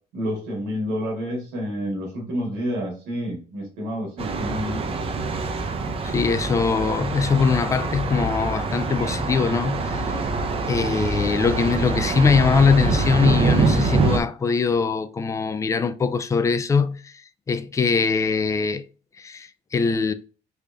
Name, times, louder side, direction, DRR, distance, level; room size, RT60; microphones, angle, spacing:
voice 1, 0.1-5.0, equal, 90° right, 1.5 m, -29 dB
Thunder, 4.2-14.2, right 3 dB, 35° right, 0.6 m, -25 dB
voice 2, 6.0-10.2 10.7-17.2 17.5-18.8 19.2-20.1, left 5 dB, 20° left, 0.3 m, -22 dB
3.4 x 2.5 x 3.4 m
cardioid pair, 110°, 17 cm